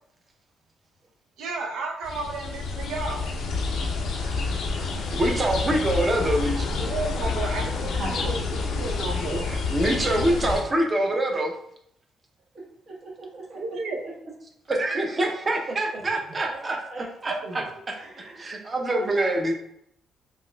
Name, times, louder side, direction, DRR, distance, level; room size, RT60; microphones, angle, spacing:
voice 1, 1.4-3.3 6.2-9.5 13.5-14.0 17.3-17.7, right 3 dB, 80° right, 1 dB, 0.6 m, -33 dB
sound 1, 2.0-10.6, left 4 dB, 75° left, 0.5 m, -28 dB
voice 2, 5.1-6.7 9.5-11.5 14.7-16.8 17.2-18.0 18.4-19.5, right 1 dB, 30° right, 2 dB, 0.6 m, -25 dB
voice 3, 7.8-8.5 10.1-10.4 12.9-13.9 16.3-17.0 17.9-18.6 19.0-19.5, right 2 dB, 65° right, -4 dB, 1.1 m, -39 dB
3.9 x 2.4 x 2.2 m, 0.70 s
cardioid pair, 90°, 0 cm